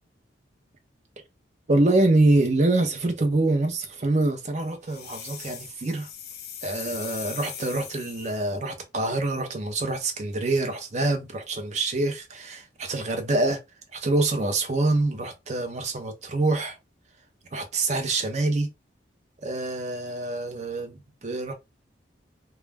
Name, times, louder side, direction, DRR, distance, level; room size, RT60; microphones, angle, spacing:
voice 1, 1.7-6.1 6.6-13.6 13.9-16.8 17.5-18.7 19.4-21.5, right 2 dB, 40° right, 0.6 m, -25 dB
sound 1, 4.9-8.6, left 8 dB, 55° left, 0.5 m, -40 dB
2.3 x 2.1 x 3.3 m
head